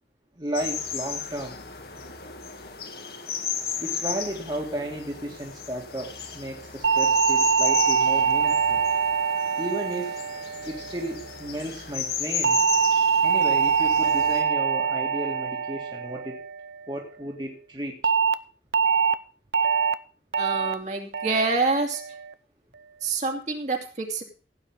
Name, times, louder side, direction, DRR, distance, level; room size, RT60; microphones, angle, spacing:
voice 1, 0.4-1.6 3.8-8.8 9.6-10.2 10.6-12.6 13.2-16.4 16.9-18.0, right 1 dB, 25° right, -1 dB, 2.3 m, -34 dB
sound 1, 0.5-14.4, left 7 dB, 60° left, 2.1 m, -34 dB
sound 2, 6.8-11.3 12.4-16.9 18.0-18.3 18.7-19.1 19.5-19.9 20.3-20.7 21.1-21.5 21.9-22.3, right 6 dB, 70° right, 0.7 m, -24 dB
voice 2, 20.4-22.0 23.0-24.2, right 3 dB, 40° right, 3 dB, 2.7 m, -26 dB
16.5 x 9.1 x 3.7 m, 0.38 s
head